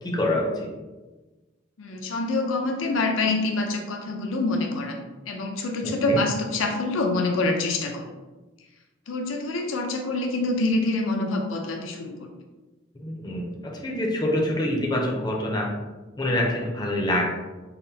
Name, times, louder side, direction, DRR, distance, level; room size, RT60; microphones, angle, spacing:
voice 1, 0.0-0.7 5.8-6.2 13.0-15.7 16.2-17.2, left 1 dB, 20° left, -2 dB, 0.5 m, -26 dB
voice 2, 1.8-8.1 9.1-12.3, left 2 dB, 80° left, 2 dB, 0.5 m, -26 dB
5.6 x 2.1 x 2.7 m, 1.2 s
head